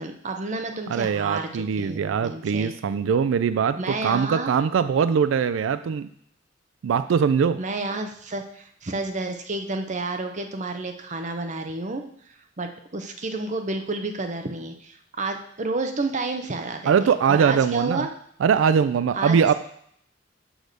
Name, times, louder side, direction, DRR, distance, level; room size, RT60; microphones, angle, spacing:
voice 1, 0.0-2.7 3.8-4.5 7.6-12.0 12.6-18.1 19.1-19.4, right 3 dB, 40° right, 5 dB, 0.9 m, -30 dB
voice 2, 0.9-6.1 6.8-7.6 16.8-18.1 18.4-19.5, right 6 dB, 90° right, 12 dB, 0.3 m, -22 dB
6.3 x 4.9 x 6.6 m, 0.66 s
head